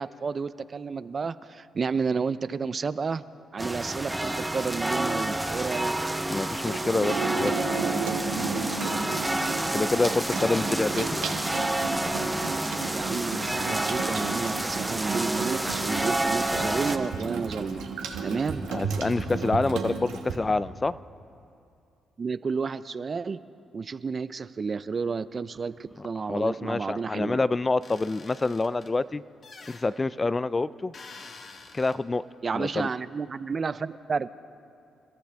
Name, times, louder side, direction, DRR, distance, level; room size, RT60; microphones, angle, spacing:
voice 1, 0.0-3.2 3.5-5.9 10.5-11.1 12.9-17.8 18.2-18.6 22.2-23.4 23.7-27.4 32.4-34.3, right 5 dB, 45° right, 15 dB, 0.5 m, -31 dB
sound 1, 3.6-17.0, right 1 dB, 10° right, 1.0 m, -29 dB
voice 2, 6.3-7.5 9.7-11.3 18.7-21.0 26.3-29.2 29.7-30.9 31.7-32.2 32.5-32.9, left 3 dB, 30° left, 17 dB, 0.4 m, -27 dB
Water tap faucet / Sink (filling or washing), 6.6-20.4, right 4 dB, 85° right, 1.5 m, -33 dB
sound 2, 27.8-28.9 29.4-29.9 30.9-32.0, left 4 dB, 55° left, 1.7 m, -47 dB
29.0 x 13.5 x 3.5 m, 2.6 s
supercardioid pair, 60°, 0 cm